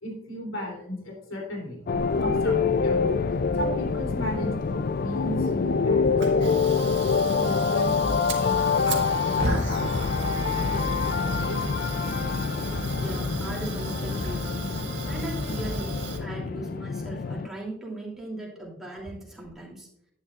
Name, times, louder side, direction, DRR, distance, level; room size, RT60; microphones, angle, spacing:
voice 1, 0.0-1.9 2.1-3.2 3.5-6.6 7.4-11.7 15.5-15.6, equal, 85° left, 1 dB, 3.2 m, -36 dB
sound 1, 1.9-17.5, left 5 dB, 50° left, 0.4 m, -26 dB
Fire, 1.9-16.2, right 2 dB, 60° right, 1.7 m, -35 dB
Wind instrument woodwind instrument, 8.7-12.7, right 1 dB, 25° right, 3.1 m, -43 dB
voice 2, 12.9-19.9, right 1 dB, ahead, -4 dB, 2.9 m, -38 dB
11.0 x 9.6 x 2.5 m, 0.72 s
head